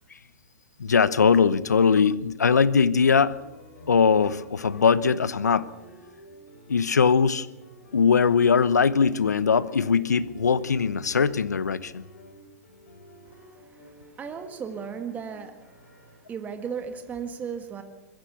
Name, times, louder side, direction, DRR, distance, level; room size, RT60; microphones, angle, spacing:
voice 1, 0.8-3.3 3.9-5.7 6.7-7.5 7.9-12.0, left 6 dB, 85° left, 18 dB, 0.9 m, -21 dB
sound 1, 3.2-16.2, equal, 70° left, 7.5 m, -50 dB
voice 2, 14.2-15.6 16.3-17.8, right 6 dB, 15° right, 7 dB, 1.7 m, -35 dB
22.5 x 14.0 x 8.3 m, 1.0 s
hypercardioid pair, 125°, 9 cm